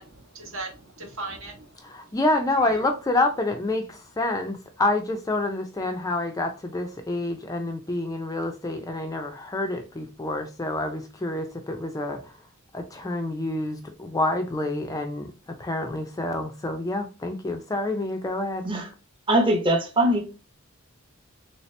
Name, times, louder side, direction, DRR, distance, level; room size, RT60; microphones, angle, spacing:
voice 1, 0.0-2.2 2.6-2.9, right 2 dB, 60° right, 0.9 m, -39 dB
voice 2, 1.8-12.3 12.7-18.7, left 2 dB, 15° left, 0.3 m, -28 dB
voice 3, 19.3-20.3, right 1 dB, 20° right, 0.7 m, -22 dB
3.2 x 2.8 x 3.1 m
head